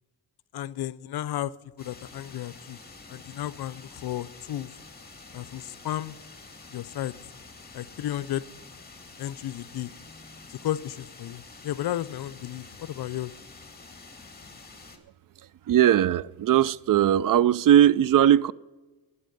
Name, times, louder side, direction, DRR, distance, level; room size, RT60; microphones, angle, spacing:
voice 1, 0.5-1.5 1.8-2.8 3.1-4.7 5.3-6.1 6.7-7.1 7.7-8.4 9.2-9.9 10.5-13.3, left 13 dB, 60° left, 0.6 m, -33 dB
sound 1, 1.8-15.0, left 3 dB, 20° left, 2.3 m, -48 dB
voice 2, 15.7-18.5, right 11 dB, 50° right, 0.5 m, -19 dB
19.0 x 8.6 x 5.3 m
cardioid pair, 85°, 44 cm